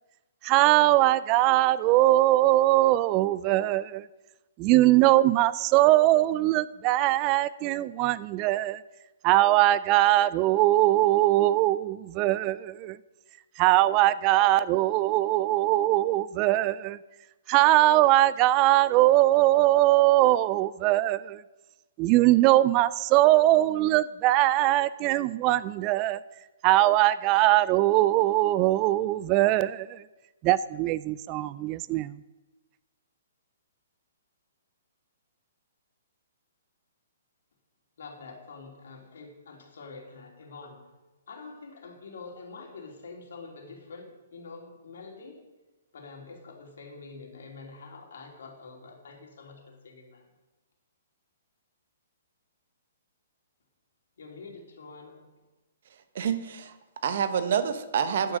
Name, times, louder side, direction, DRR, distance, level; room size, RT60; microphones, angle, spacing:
voice 1, 0.4-4.0 4.6-8.8 9.2-13.0 13.6-17.0 17.5-21.4 22.0-26.2 26.6-30.0 30.4-32.1, right 15 dB, 30° right, 0.3 m, -21 dB
voice 2, 38.0-40.8 41.3-45.4 45.9-50.2 54.2-55.2, left 4 dB, 70° left, 2.9 m, -46 dB
voice 3, 56.1-58.4, right 7 dB, 60° right, 1.0 m, -28 dB
10.0 x 8.8 x 6.4 m
hypercardioid pair, 135°, 0 cm